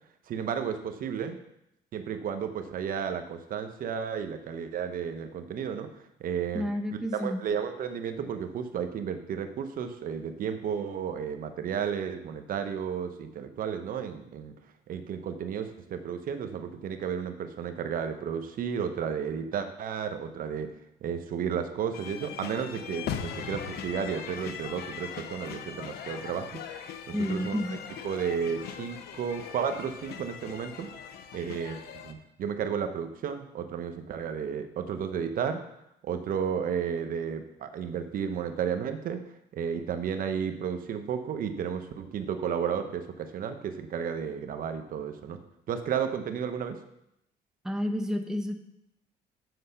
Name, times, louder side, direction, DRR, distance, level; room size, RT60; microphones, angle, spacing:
voice 1, 0.3-1.4 1.9-5.9 6.2-14.5 14.9-20.7 21.0-27.8 28.0-30.9 31.3-35.6 36.0-39.2 39.5-45.4 45.7-46.8, right 7 dB, 55° right, 8 dB, 0.9 m, -33 dB
voice 2, 6.5-7.4 27.1-27.8 47.6-48.6, left 1 dB, 5° right, 4 dB, 0.8 m, -30 dB
sound 1, 21.9-32.1, left 7 dB, 70° left, 0.9 m, -40 dB
7.8 x 5.5 x 6.6 m, 0.81 s
cardioid pair, 110°, 17 cm